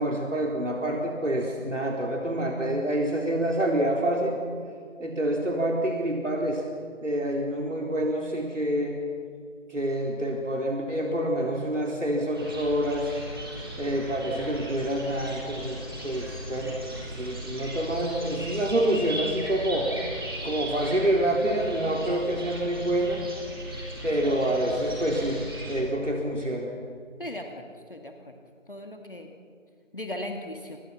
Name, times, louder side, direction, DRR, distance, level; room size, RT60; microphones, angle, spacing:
voice 1, 0.0-4.3 5.0-6.6 7.0-9.0 9.7-13.1 13.8-16.8 17.1-19.9 20.4-23.2 24.0-25.4 25.7-26.7, right 1 dB, 70° right, 0 dB, 4.1 m, -27 dB
sound 1, 12.3-25.8, right 1 dB, 20° right, 4.2 m, -37 dB
voice 2, 27.2-28.4 28.7-29.3 29.9-30.8, left 1 dB, 40° left, 3 dB, 2.2 m, -38 dB
30.0 x 26.5 x 5.9 m, 2.3 s
figure-of-eight pair, 175°, 39 cm